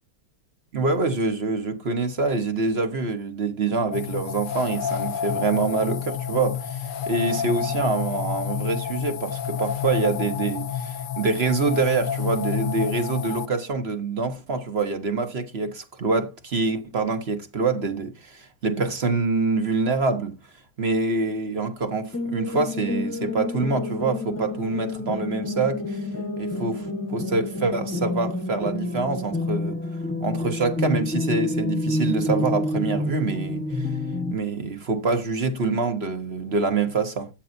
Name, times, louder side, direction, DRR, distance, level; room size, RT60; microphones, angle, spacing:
voice 1, 0.7-20.4 20.8-26.0 26.4-29.8 30.2-33.9 34.3-37.3, right 3 dB, 40° right, 1.4 m, -25 dB
sound 1, 3.9-13.5, left 8 dB, 80° left, 1.5 m, -29 dB
sound 2, 22.1-34.3, left 2 dB, 10° left, 1.2 m, -28 dB
13.0 x 9.1 x 2.7 m
omnidirectional pair, 1.9 m